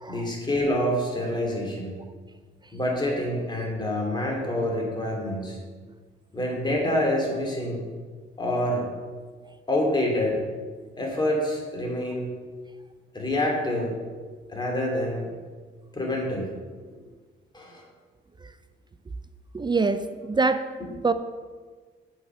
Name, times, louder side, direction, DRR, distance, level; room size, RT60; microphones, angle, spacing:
voice 1, 0.1-1.9 2.7-5.6 6.3-7.8 8.4-8.9 9.7-10.4 11.0-12.3 13.1-13.9 14.5-15.3 15.9-16.5 17.5-17.8, left 1 dB, 20° left, -1 dB, 2.8 m, -26 dB
voice 2, 19.5-20.6 21.0-21.1, right 4 dB, 20° right, 11 dB, 0.4 m, -24 dB
7.7 x 6.1 x 6.1 m, 1.5 s
cardioid pair, 90°, 20 cm